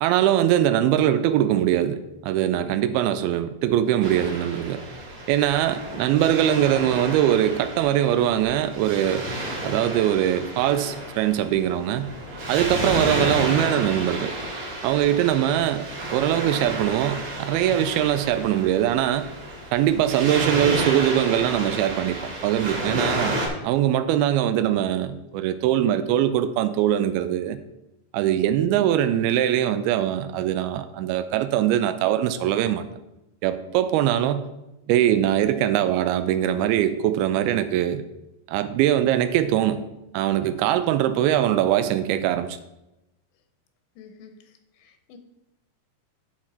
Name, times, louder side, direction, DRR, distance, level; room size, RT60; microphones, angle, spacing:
voice 1, 0.0-4.8 5.3-9.3 9.6-12.1 12.5-14.4 14.8-19.3 19.7-27.6 28.1-32.9 33.4-34.4 34.9-38.0 38.5-39.9 40.1-42.6, right 11 dB, 85° right, 2.3 m, -22 dB
Waves surf, 4.0-23.5, right 1 dB, 50° right, 3.5 m, -31 dB
voice 2, 44.0-45.2, left 6 dB, 85° left, 3.1 m, -48 dB
12.5 x 4.4 x 4.3 m
omnidirectional pair, 4.9 m